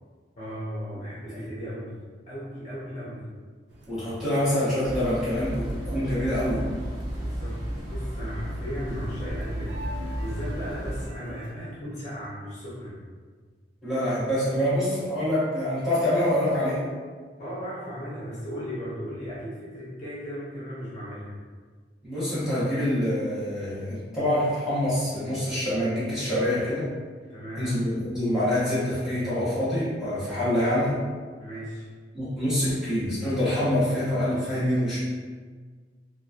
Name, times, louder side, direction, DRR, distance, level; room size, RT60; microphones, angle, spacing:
voice 1, 0.4-2.0 2.3-3.3 7.1-7.6 7.9-13.0 17.4-21.4 27.3-27.8 31.4-31.9, equal, 40° left, -8 dB, 0.7 m, -36 dB
sound 1, 3.7-11.5, equal, 70° right, 0.4 m, -46 dB
voice 2, 3.9-6.7 13.8-16.8 22.0-26.9 27.6-31.0 32.1-35.0, left 1 dB, 5° right, -12 dB, 0.9 m, -26 dB
sound 2, 4.8-11.1, equal, 30° right, 1.2 m, -33 dB
2.8 x 2.2 x 2.4 m, 1.5 s
head